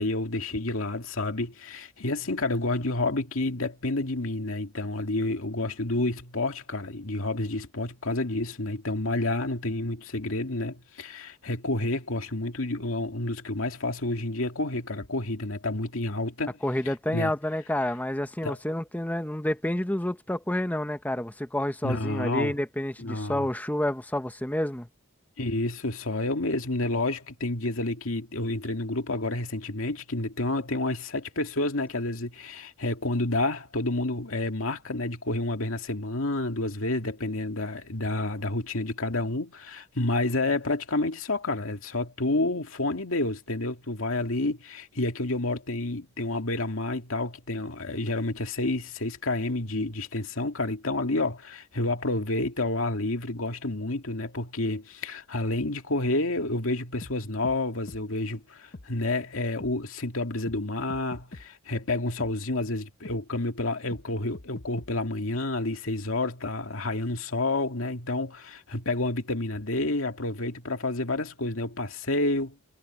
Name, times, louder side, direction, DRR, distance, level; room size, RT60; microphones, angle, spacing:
voice 1, 0.0-16.6 16.9-17.3 18.4-18.6 21.8-22.5 23.0-23.5 25.4-72.6, left 2 dB, 75° left, 2.2 m, -29 dB
voice 2, 16.6-24.9, left 1 dB, 10° left, 0.9 m, -29 dB
sound 1, 57.0-57.1 57.4-57.6 57.9-58.0 58.7-58.9 59.6-59.7 60.5-60.6 60.9-61.5 62.2-62.3 63.0-63.2 63.9-64.0 64.3-64.9, left 2 dB, 50° left, 1.1 m, -43 dB
head